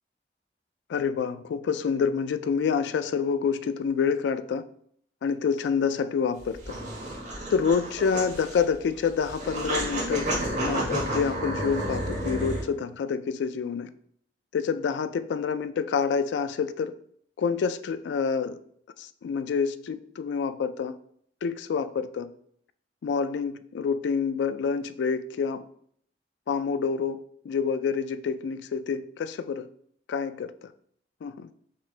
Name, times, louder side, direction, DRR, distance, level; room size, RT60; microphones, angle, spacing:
voice 1, 0.9-4.6 5.2-6.8 7.5-13.9 14.5-16.9 17.4-18.6 19.0-21.0 21.4-22.3 23.0-25.7 26.5-29.7 30.1-30.7 31.2-31.5, left 6 dB, 80° left, 12 dB, 0.3 m, -27 dB
sound 1, 6.4-12.6, right 1 dB, 40° right, 1.5 m, -31 dB
5.9 x 3.2 x 2.5 m, 0.65 s
head